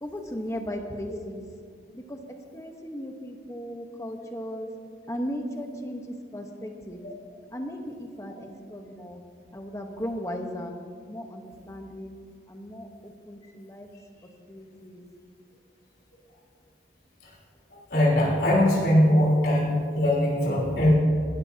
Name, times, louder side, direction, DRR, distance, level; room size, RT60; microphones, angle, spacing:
voice 1, 0.0-1.4 1.9-2.2 2.5-4.7 5.1-7.0 7.5-9.2 9.5-10.8 11.1-12.2 12.5-13.9 14.5-15.0, equal, 15° left, 3 dB, 1.1 m, -36 dB
voice 2, 17.9-20.9, left 1 dB, 65° left, -6 dB, 3.8 m, -21 dB
20.0 x 13.5 x 2.8 m, 2.1 s
head